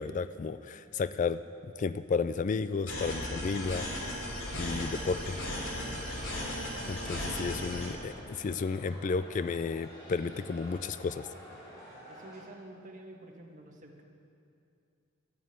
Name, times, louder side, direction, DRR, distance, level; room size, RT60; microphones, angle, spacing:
voice 1, 0.0-1.4 1.8-3.9 4.5-5.4 6.9-11.3, left 4 dB, 35° left, 13 dB, 0.3 m, -32 dB
sound 1, 2.9-7.9, left 1 dB, 65° left, 3.5 m, -36 dB
sound 2, 6.2-12.4, equal, 20° left, 4.3 m, -50 dB
voice 2, 7.2-8.2 12.1-14.0, right 1 dB, 40° right, 1 dB, 1.7 m, -49 dB
14.0 x 9.5 x 9.2 m, 2.6 s
head